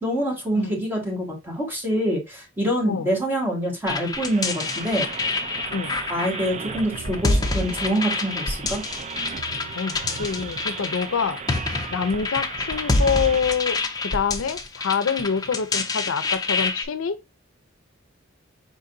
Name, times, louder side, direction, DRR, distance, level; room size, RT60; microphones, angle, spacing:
voice 1, 0.0-5.1 6.1-8.8, equal, 10° right, 1.7 m, -25 dB
sound 1, 3.9-16.8, left 3 dB, 20° left, 0.6 m, -27 dB
sound 2, 4.1-13.4, right 5 dB, 35° right, 0.4 m, -36 dB
voice 2, 9.8-11.4 11.9-17.2, left 6 dB, 75° left, 0.5 m, -26 dB
5.0 x 3.8 x 2.6 m
head